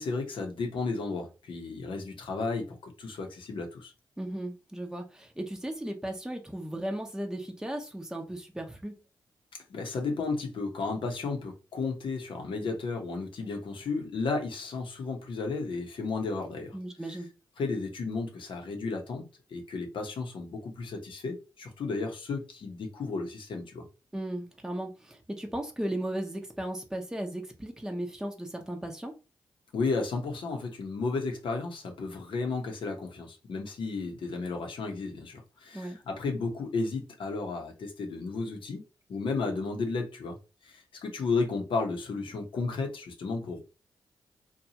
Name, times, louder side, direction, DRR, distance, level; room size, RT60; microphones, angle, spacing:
voice 1, 0.0-3.9 9.7-16.8 17.1-17.2 17.6-23.8 29.7-38.8 39.1-40.4 40.6-43.6, left 4 dB, 65° left, 0.8 m, -33 dB
voice 2, 4.2-9.0 16.7-17.3 24.1-29.1 35.7-36.0, right 1 dB, 5° right, 0.8 m, -36 dB
2.8 x 2.2 x 2.8 m
supercardioid pair, 40°, 9 cm